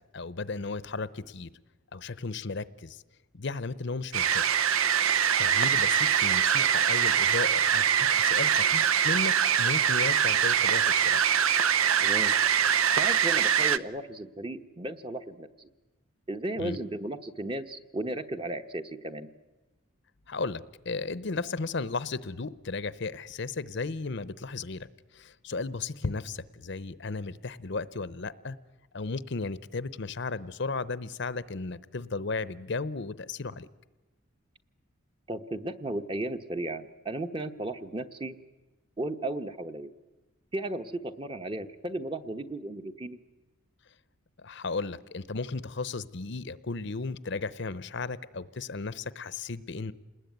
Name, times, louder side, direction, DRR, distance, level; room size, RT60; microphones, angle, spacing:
voice 1, 0.1-1.5 1.9-3.0 3.3-4.7 5.4-9.3 9.6-11.2 16.6-16.8 20.3-24.9 25.1-28.6 28.9-33.7 44.4-49.9, left 3 dB, 55° left, 17 dB, 0.8 m, -35 dB
sound 1, 4.1-13.8, right 8 dB, 80° right, 0.8 m, -23 dB
voice 2, 12.0-12.3 12.9-15.7 16.3-19.3 35.3-38.4 39.0-39.9 40.5-43.2, right 1 dB, 25° right, 8 dB, 1.1 m, -35 dB
28.0 x 20.0 x 9.4 m, 1.2 s
head